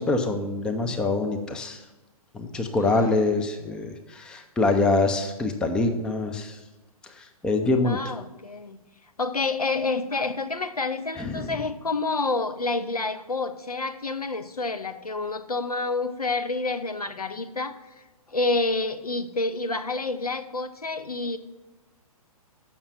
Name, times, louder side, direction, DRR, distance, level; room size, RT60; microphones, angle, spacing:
voice 1, 0.0-1.8 2.3-6.6 7.2-8.0 11.2-11.6, left 3 dB, 5° left, 5 dB, 0.4 m, -25 dB
voice 2, 2.8-3.3 7.8-8.8 9.2-17.8 18.3-21.4, left 3 dB, 85° left, 10 dB, 0.7 m, -28 dB
7.0 x 5.9 x 6.9 m, 1.1 s
figure-of-eight pair, 120°, 19 cm